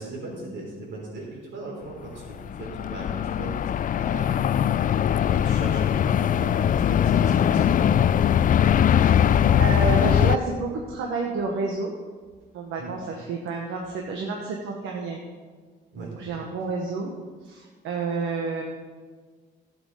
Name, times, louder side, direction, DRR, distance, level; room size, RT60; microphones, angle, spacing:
voice 1, 0.0-3.6 4.0-4.4 5.1-8.1 12.8-13.0 15.9-16.1, right 2 dB, 70° right, -2 dB, 3.9 m, -38 dB
sound 1, 2.1-10.4, left 9 dB, 45° left, 0.4 m, -21 dB
voice 2, 9.6-11.9 12.5-15.2 15.9-17.1 17.4-18.6, right 4 dB, 85° right, 1 dB, 1.1 m, -30 dB
12.0 x 8.0 x 4.9 m, 1.5 s
cardioid pair, 90°, 20 cm